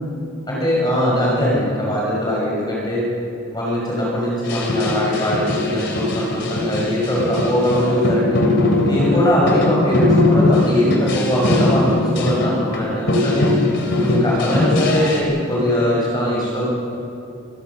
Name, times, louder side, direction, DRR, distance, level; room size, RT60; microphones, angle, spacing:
voice 1, 0.5-3.0 3.5-8.4 8.9-13.5 14.0-16.7, equal, 20° left, -5 dB, 5.4 m, -21 dB
sound 1, 4.5-12.8 13.1-15.2, left 2 dB, 60° left, 3.3 m, -19 dB
24.5 x 15.5 x 6.9 m, 2.7 s
head